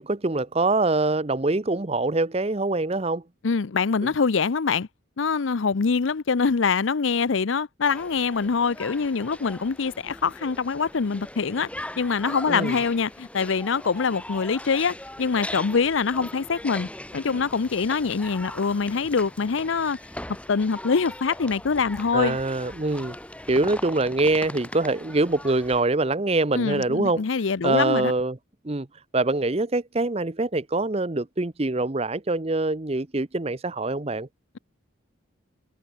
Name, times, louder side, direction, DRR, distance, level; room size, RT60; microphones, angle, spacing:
voice 1, 0.0-3.2 4.0-4.1 12.5-12.8 22.1-23.2 23.5-27.2 27.6-28.4 28.6-28.9 29.1-34.3, right 2 dB, 30° right, 0.8 m, -24 dB
voice 2, 3.4-4.9 5.2-11.7 12.0-20.0 20.5-22.4 26.5-28.1, left 5 dB, 75° left, 0.6 m, -24 dB
sound 1, 7.8-25.8, left 1 dB, 5° left, 2.9 m, -40 dB
head